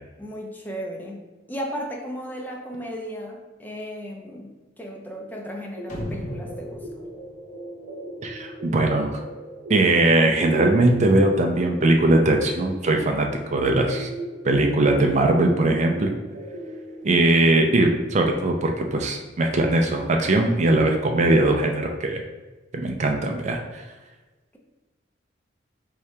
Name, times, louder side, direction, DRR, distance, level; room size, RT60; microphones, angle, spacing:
voice 1, 0.2-1.2 1.5-4.5 4.8-6.9, equal, 10° left, 0 dB, 0.6 m, -35 dB
sound 1, 5.8-17.0, right 1 dB, 70° right, 0.8 m, -39 dB
sound 2, 5.9-8.4, equal, 45° left, 0.9 m, -36 dB
voice 2, 8.2-9.2 9.7-14.1 14.4-16.1 17.0-22.2 22.7-23.8, right 2 dB, 40° right, 3 dB, 0.4 m, -20 dB
4.6 x 2.8 x 3.3 m, 1.2 s
head